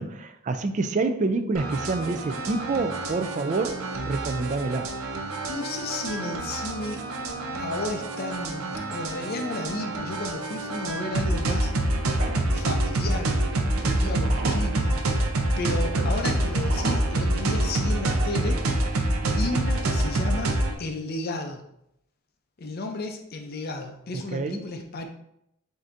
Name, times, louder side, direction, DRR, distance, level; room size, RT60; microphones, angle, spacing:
voice 1, 0.0-4.9 24.1-24.6, right 3 dB, 35° right, 9 dB, 0.3 m, -27 dB
sound 1, 1.6-20.8, right 1 dB, 90° right, 0.6 m, -27 dB
voice 2, 5.5-7.0 7.6-11.7 12.5-13.4 13.8-15.3 15.6-20.5 20.8-21.6 22.6-25.1, left 2 dB, 45° left, 4 dB, 0.5 m, -33 dB
7.6 x 2.7 x 2.5 m, 0.77 s
head